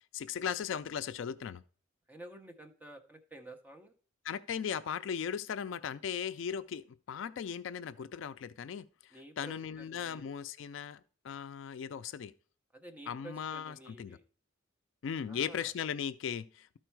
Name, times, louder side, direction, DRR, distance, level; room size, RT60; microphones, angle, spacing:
voice 1, 0.1-1.6 4.2-12.3 13.1-14.2 15.0-16.8, left 7 dB, 65° left, 0.3 m, -38 dB
voice 2, 2.1-3.9 9.1-10.3 12.7-14.2 15.3-15.7, right 1 dB, 10° right, 0.8 m, -51 dB
12.5 x 4.4 x 4.6 m
head